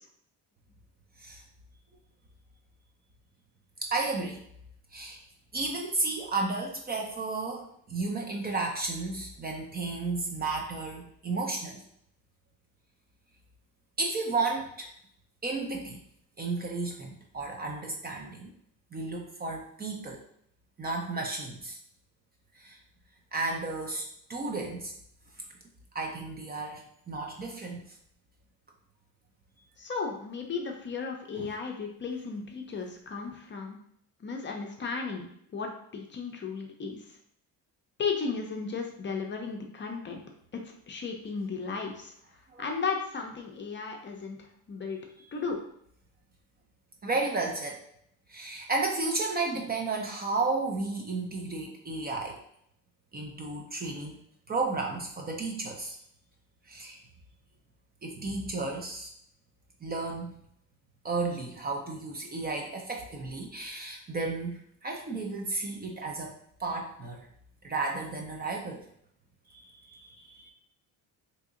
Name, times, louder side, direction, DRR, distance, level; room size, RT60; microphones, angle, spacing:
voice 1, 3.8-4.4 4.9-5.2 5.5-11.8 14.0-14.9 15.4-16.0 16.4-18.5 18.9-20.2 20.8-21.8 22.6-22.8 23.3-24.9 25.9-27.9 31.3-31.5 42.5-42.7 47.0-47.8 48.3-52.4 53.1-54.2 54.5-56.0 56.7-57.0 58.0-59.1 59.8-60.4 61.0-66.3 66.6-67.3 67.6-68.8 69.5-70.5, right 3 dB, 25° right, 0 dB, 0.5 m, -33 dB
voice 2, 29.8-33.8 34.2-35.3 35.5-37.0 38.0-40.2 40.5-40.6 40.9-42.1 42.6-45.0 45.3-45.6, left 5 dB, 30° left, 2 dB, 0.6 m, -35 dB
2.8 x 2.6 x 3.7 m, 0.69 s
cardioid pair, 130°, 36 cm